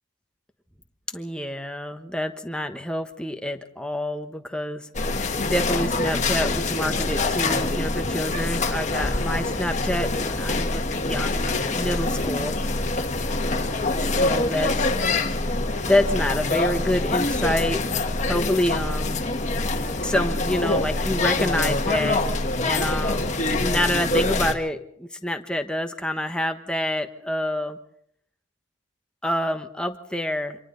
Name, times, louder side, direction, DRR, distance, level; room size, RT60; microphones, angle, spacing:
voice 1, 1.1-4.9 5.4-11.5 11.7-12.6 14.0-14.9 15.9-19.3 20.0-22.2 22.6-27.8 29.2-30.6, left 1 dB, 5° left, 6 dB, 1.1 m, -27 dB
sound 1, 4.9-24.5, left 2 dB, 35° left, 1.5 m, -25 dB
28.5 x 25.5 x 4.0 m, 0.69 s
head